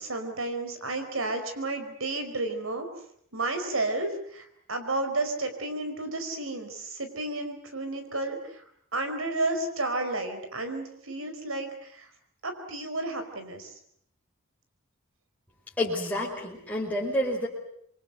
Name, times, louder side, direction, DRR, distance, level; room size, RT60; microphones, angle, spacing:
voice 1, 0.0-2.8 3.3-8.6 8.9-12.1 12.4-13.7, right 2 dB, 80° right, 7 dB, 4.8 m, -32 dB
voice 2, 15.8-17.5, left 1 dB, 5° left, -5 dB, 5.1 m, -29 dB
27.5 x 23.5 x 7.8 m, 0.69 s
head